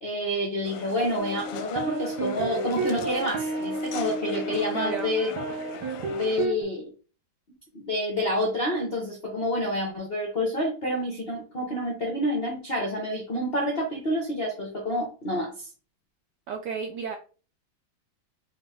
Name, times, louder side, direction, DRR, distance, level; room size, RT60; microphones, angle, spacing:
voice 1, 0.0-5.3 6.1-6.8 7.7-15.7, left 1 dB, 65° left, 0 dB, 0.6 m, -28 dB
sound 1, 0.6-6.5, left 9 dB, 90° left, 1.5 m, -39 dB
sound 2, 1.2-6.6, right 3 dB, 60° right, 1.2 m, -32 dB
voice 2, 4.7-5.1 16.5-17.2, right 6 dB, 80° right, 4 dB, 0.9 m, -32 dB
5.0 x 2.4 x 3.4 m, 0.37 s
omnidirectional pair, 2.3 m